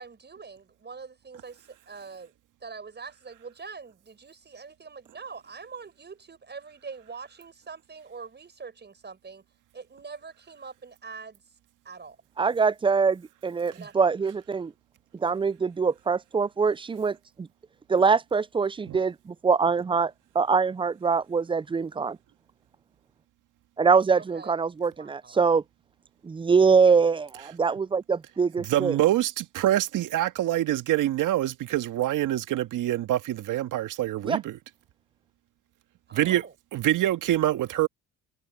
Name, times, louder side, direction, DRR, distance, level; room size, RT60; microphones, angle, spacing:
voice 1, 0.0-2.3 2.6-9.4 9.7-11.4 11.8-12.2 13.7-13.9 24.1-24.6 24.9-25.4 36.1-36.5, right 5 dB, 30° right, 6.4 m, -43 dB
voice 2, 12.4-14.7 15.2-17.5 17.9-22.2 23.8-25.6 26.2-29.0 34.2-34.4, right 5 dB, 15° right, 0.4 m, -24 dB
voice 3, 28.6-34.6 36.1-36.4 36.7-37.9, right 13 dB, 65° right, 1.9 m, -25 dB
supercardioid pair, 70°, 34 cm